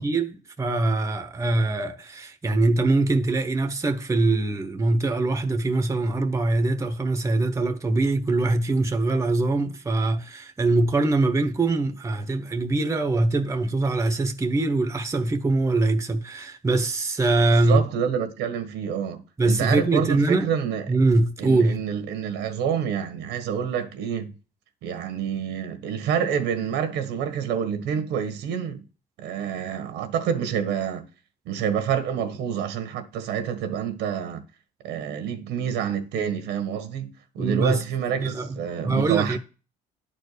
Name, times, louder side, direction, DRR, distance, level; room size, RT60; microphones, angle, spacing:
voice 1, 0.0-17.8 19.4-20.5 20.9-21.8 37.4-37.8 38.2-38.5 38.8-39.4, right 2 dB, 15° right, 1.1 m, -23 dB
voice 2, 17.6-20.9 21.4-24.3 24.8-28.8 29.2-31.0 31.4-34.4 34.8-39.4, right 8 dB, 85° right, 1.5 m, -28 dB
10.5 x 4.6 x 6.7 m
cardioid pair, 110°, 17 cm